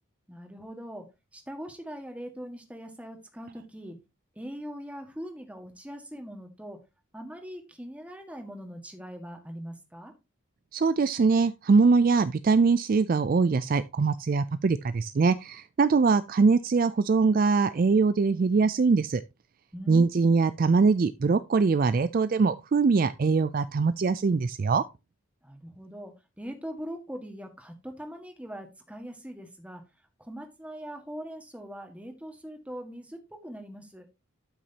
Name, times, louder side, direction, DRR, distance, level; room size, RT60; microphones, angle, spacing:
voice 1, 0.3-1.0 1.3-4.0 4.3-6.8 7.1-10.1 19.7-20.1 25.4-29.8 30.2-34.1, equal, 5° right, 1.7 m, -41 dB
voice 2, 10.7-19.2 19.9-24.8, right 4 dB, 40° right, 0.3 m, -23 dB
12.0 x 6.1 x 2.9 m
head